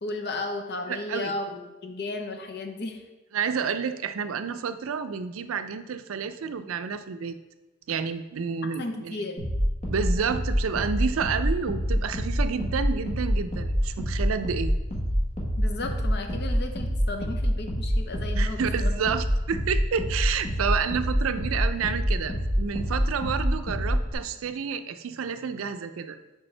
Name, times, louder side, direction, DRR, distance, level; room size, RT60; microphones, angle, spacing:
voice 1, 0.0-3.0 8.8-9.4 15.6-19.1, left 2 dB, 55° left, 5 dB, 0.7 m, -34 dB
voice 2, 0.9-1.3 3.3-7.4 7.9-9.2 9.9-14.7 18.3-26.2, right 6 dB, 90° right, 10 dB, 0.4 m, -30 dB
sound 1, 9.4-24.1, equal, 35° left, 1.1 m, -27 dB
7.0 x 4.7 x 3.2 m, 1.1 s
head